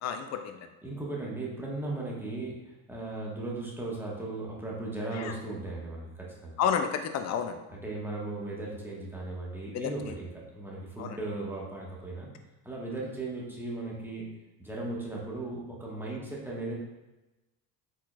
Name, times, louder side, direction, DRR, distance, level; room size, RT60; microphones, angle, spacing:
voice 1, 0.0-0.7 5.1-5.3 6.6-7.6 9.7-10.1 11.0-11.2, left 7 dB, 35° left, 7 dB, 0.5 m, -31 dB
voice 2, 0.8-2.5 2.9-6.1 6.4-6.6 7.7-10.3 10.5-12.3 12.6-14.2 14.6-16.7, right 2 dB, 5° right, -4 dB, 1.4 m, -37 dB
4.4 x 4.3 x 2.5 m, 1.0 s
figure-of-eight pair, 60°, 46 cm